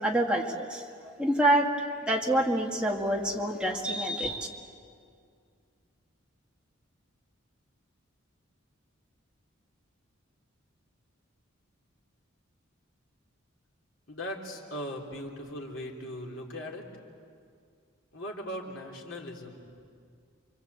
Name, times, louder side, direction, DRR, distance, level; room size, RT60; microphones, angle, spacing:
voice 1, 0.0-1.7 2.1-4.5, right 1 dB, 5° right, -1 dB, 2.1 m, -27 dB
voice 2, 14.1-16.9 18.1-19.6, equal, 65° left, -1 dB, 3.6 m, -39 dB
29.5 x 24.0 x 8.2 m, 2.2 s
head